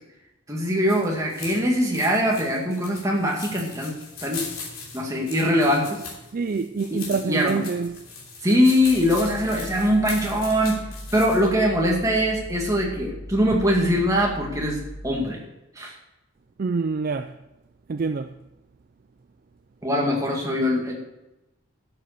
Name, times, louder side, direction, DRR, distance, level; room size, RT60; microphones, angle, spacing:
voice 1, 0.5-4.5 4.9-6.0 7.2-7.6 8.4-10.8 11.1-15.4 15.8-16.0 19.8-20.9, equal, 15° right, 2.2 m, -22 dB
Fingers Rustling Through Plant, 0.7-11.5, left 5 dB, 70° left, 3.1 m, -40 dB
voice 2, 6.3-8.0 16.6-17.4 17.9-18.3, right 4 dB, 40° right, 0.4 m, -26 dB
sound 1, 8.7-15.3, equal, 50° left, 2.5 m, -39 dB
12.0 x 7.8 x 6.7 m
head